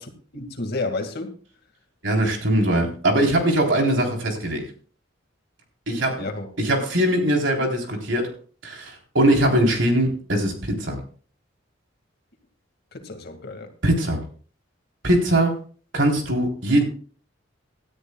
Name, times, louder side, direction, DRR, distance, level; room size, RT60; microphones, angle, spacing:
voice 1, 0.0-1.4 6.2-6.5 12.9-13.7, left 3 dB, 55° left, 2.1 m, -31 dB
voice 2, 2.0-4.6 5.9-6.2 6.6-8.3 8.6-11.0 13.8-14.2 15.0-15.6 15.9-16.8, right 1 dB, 70° right, 3.7 m, -21 dB
18.0 x 13.0 x 2.3 m
head